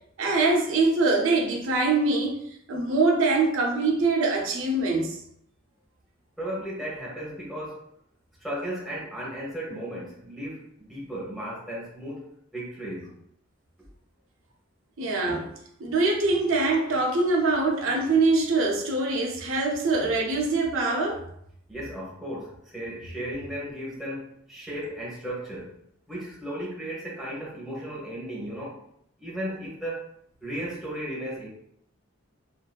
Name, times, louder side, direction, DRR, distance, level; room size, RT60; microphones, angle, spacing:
voice 1, 0.2-2.4 2.7-5.2 15.0-15.5 15.8-21.2, right 3 dB, 85° right, 0 dB, 0.6 m, -23 dB
voice 2, 6.4-7.9 8.4-13.2 21.7-25.7 26.1-28.8 29.2-31.5, right 1 dB, ahead, -6 dB, 0.9 m, -35 dB
2.6 x 2.5 x 2.2 m, 0.70 s
head